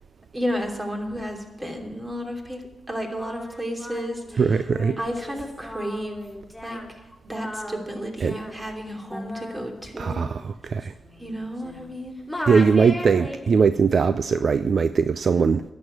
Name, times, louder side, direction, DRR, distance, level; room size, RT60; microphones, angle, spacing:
voice 1, 0.3-4.6 5.0-6.2 6.6-6.8 7.2-10.2 11.2-12.2, equal, 25° right, 2 dB, 3.0 m, -32 dB
Singing, 2.9-12.0 12.3-13.7, left 1 dB, 5° left, 3.9 m, -37 dB
voice 2, 4.4-5.0 8.2-8.4 10.0-10.9 12.5-15.6, right 5 dB, 65° right, 12 dB, 0.4 m, -20 dB
11.0 x 7.2 x 9.3 m, 1.0 s
supercardioid pair, 45°, 0 cm